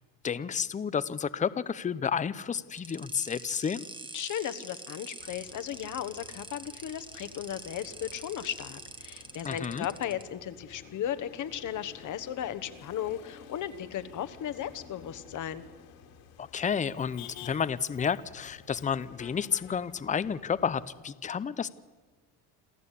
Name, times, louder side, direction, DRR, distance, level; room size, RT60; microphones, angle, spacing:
voice 1, 0.2-3.9 9.4-9.9 16.4-21.7, left 7 dB, 20° left, 16 dB, 0.7 m, -31 dB
sound 1, 2.8-10.2, right 2 dB, 10° right, 1.3 m, -45 dB
voice 2, 4.1-15.6, left 10 dB, 50° left, 12 dB, 1.3 m, -36 dB
Motor vehicle (road), 5.2-20.9, left 8 dB, 80° left, 3.2 m, -52 dB
27.0 x 14.0 x 8.4 m, 1.3 s
cardioid pair, 115°, 40 cm